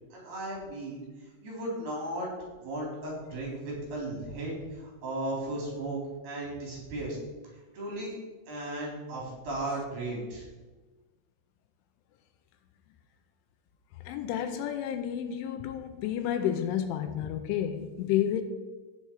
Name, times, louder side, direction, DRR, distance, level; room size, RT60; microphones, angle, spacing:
voice 1, 0.1-1.0 1.4-2.3 2.6-7.2 7.7-8.2 8.5-10.5, right 1 dB, 55° right, -3 dB, 5.7 m, -35 dB
voice 2, 14.0-18.4, left 10 dB, 80° left, 8 dB, 3.1 m, -30 dB
17.0 x 7.0 x 4.8 m, 1.3 s
omnidirectional pair, 5.7 m